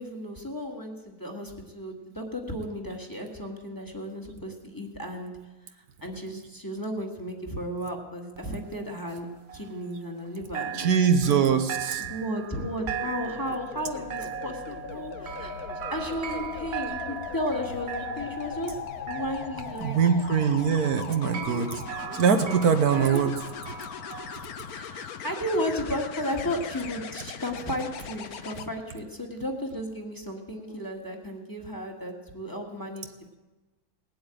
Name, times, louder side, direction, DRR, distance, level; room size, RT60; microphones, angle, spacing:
voice 1, 0.0-5.3 5.6-9.3 9.5-11.7 12.0-15.6 15.9-18.8 19.1-20.0 21.3-22.5 22.9-23.2 24.7-33.1, equal, 15° left, 1 dB, 1.8 m, -34 dB
sound 1, 8.4-10.3 10.5-24.4, right 9 dB, 50° right, 0.9 m, -39 dB
voice 2, 10.8-12.0 19.8-21.7 22.1-23.3, right 7 dB, 75° right, 8 dB, 1.5 m, -22 dB
sound 2, 12.5-28.7 30.6-30.8, left 7 dB, 75° left, 1.3 m, -39 dB
19.0 x 7.9 x 9.0 m, 1.2 s
omnidirectional pair, 1.6 m